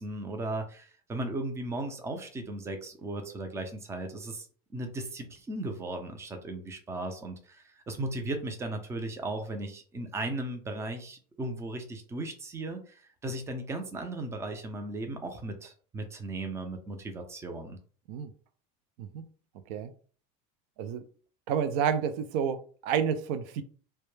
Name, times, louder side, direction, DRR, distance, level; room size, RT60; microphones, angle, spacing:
voice 1, 0.0-4.5 4.7-17.8, right 2 dB, 15° right, 0.4 m, -36 dB
voice 2, 21.5-23.6, right 7 dB, 75° right, 0.4 m, -30 dB
2.1 x 2.1 x 3.1 m
supercardioid pair, 130°, 20 cm